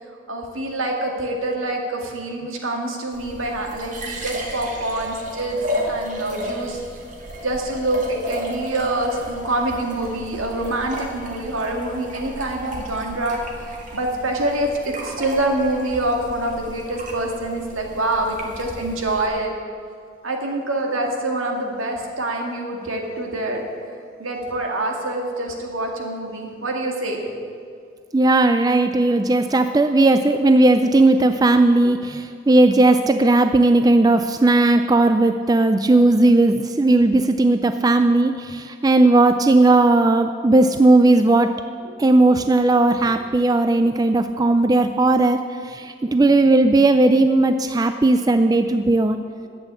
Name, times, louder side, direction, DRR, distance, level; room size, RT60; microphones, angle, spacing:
voice 1, 0.3-5.6 5.9-6.8 7.4-13.4 13.9-19.5 20.2-23.7 24.2-27.2 41.8-41.9 43.0-43.1, right 1 dB, 75° right, 1 dB, 2.1 m, -25 dB
sound 1, 3.1-19.3, equal, 35° right, 1.8 m, -34 dB
voice 2, 28.1-41.5 42.0-49.2, right 2 dB, 20° right, 8 dB, 0.3 m, -16 dB
12.0 x 8.3 x 8.2 m, 2.3 s
head